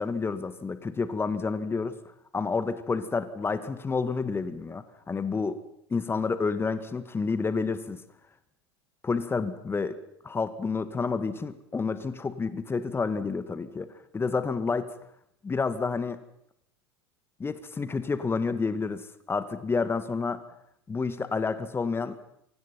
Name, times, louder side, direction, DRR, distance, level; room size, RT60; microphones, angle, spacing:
voice 1, 0.0-2.0 2.3-5.6 5.9-8.0 9.0-10.0 10.2-14.9 15.4-16.2 17.4-20.4 20.9-22.3, left 4 dB, 15° left, 13 dB, 2.0 m, -29 dB
28.5 x 25.0 x 5.8 m, 0.71 s
figure-of-eight pair, 80°, 14 cm